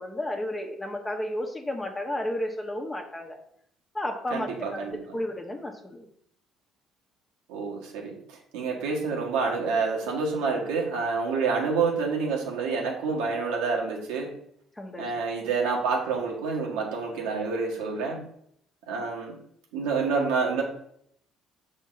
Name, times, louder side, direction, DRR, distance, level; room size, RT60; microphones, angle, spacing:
voice 1, 0.0-3.4 3.9-6.1 14.8-15.1, left 1 dB, 15° left, 3 dB, 1.2 m, -32 dB
voice 2, 4.3-5.0 7.5-8.1 8.5-14.3 15.0-18.2 18.9-19.3 19.7-20.6, right 4 dB, 90° right, -1 dB, 1.6 m, -28 dB
6.2 x 4.1 x 4.0 m, 0.70 s
supercardioid pair, 85°, 0 cm